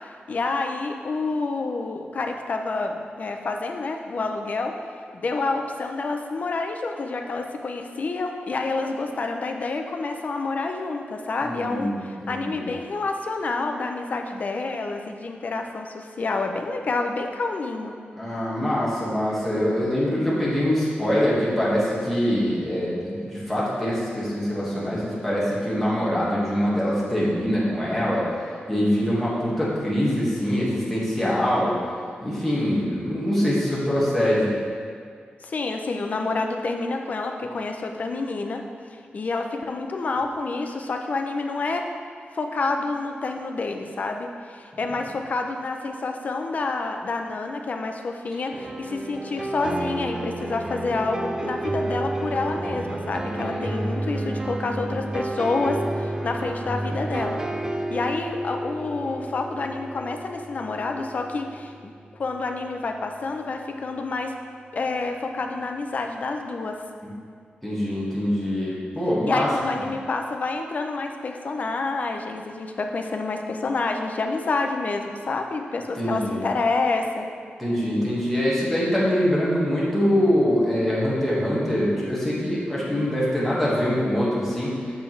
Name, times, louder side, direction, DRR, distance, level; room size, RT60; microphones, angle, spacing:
voice 1, 0.0-4.8 5.1-17.9 35.4-38.6 38.9-41.8 42.3-57.4 57.9-61.9 62.2-64.3 64.7-66.8 69.3-77.3, left 3 dB, 45° left, 4 dB, 0.5 m, -28 dB
voice 2, 11.4-12.6 18.2-28.3 28.7-31.8 32.2-34.5 53.2-53.8 67.0-67.1 67.6-69.5 75.9-76.5 77.6-84.9, equal, 5° left, -9 dB, 1.6 m, -24 dB
sound 1, 48.5-62.4, right 1 dB, 20° right, 0.3 m, -31 dB
6.9 x 6.7 x 3.2 m, 2.1 s
wide cardioid pair, 170°, 4 cm